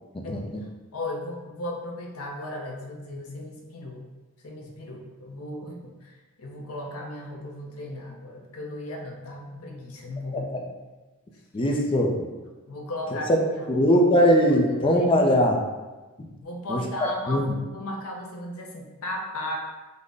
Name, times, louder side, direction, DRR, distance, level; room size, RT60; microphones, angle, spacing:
voice 1, 0.1-0.6 11.5-12.1 13.1-13.4 13.7-15.6 16.7-16.8 17.3-17.4, equal, 25° left, 1 dB, 0.4 m, -20 dB
voice 2, 0.9-4.1 4.4-10.7 11.3-11.4 12.7-15.1 16.4-19.6, left 1 dB, 75° left, 0 dB, 0.6 m, -36 dB
3.8 x 2.1 x 3.4 m, 1.2 s
head